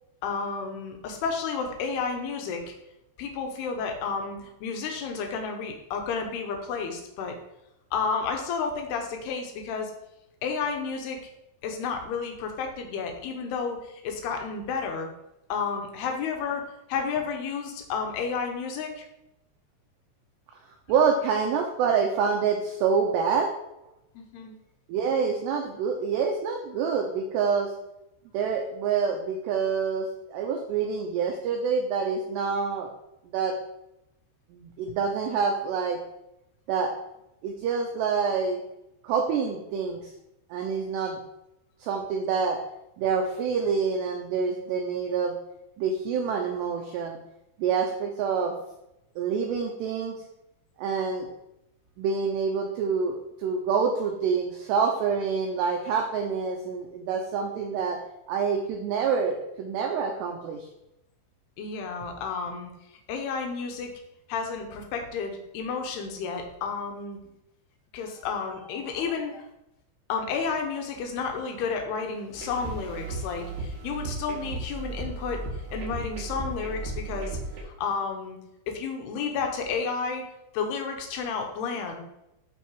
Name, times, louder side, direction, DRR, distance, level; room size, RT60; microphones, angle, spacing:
voice 1, 0.2-2.7 3.2-7.4 7.9-9.9 10.4-11.2 11.6-15.1 15.5-19.1 24.2-24.6 61.6-62.7 63.1-63.9 64.3-67.2 67.9-69.4 70.1-75.4 75.7-78.4 78.7-80.2 80.5-82.0, left 5 dB, 85° left, 3 dB, 2.3 m, -31 dB
voice 2, 20.9-23.6 24.9-27.7 28.3-32.9 33.3-33.6 34.5-36.0 36.7-36.9 37.4-38.6 39.0-40.1 40.5-41.2 41.8-42.6 43.0-45.4 45.8-47.2 47.6-48.6 49.2-50.2 50.8-51.3 52.0-58.0 58.3-60.7, right 6 dB, 90° right, 2 dB, 2.4 m, -27 dB
sound 1, 72.3-77.6, right 2 dB, 60° right, 3.7 m, -35 dB
11.5 x 4.1 x 4.7 m, 0.86 s
omnidirectional pair, 5.9 m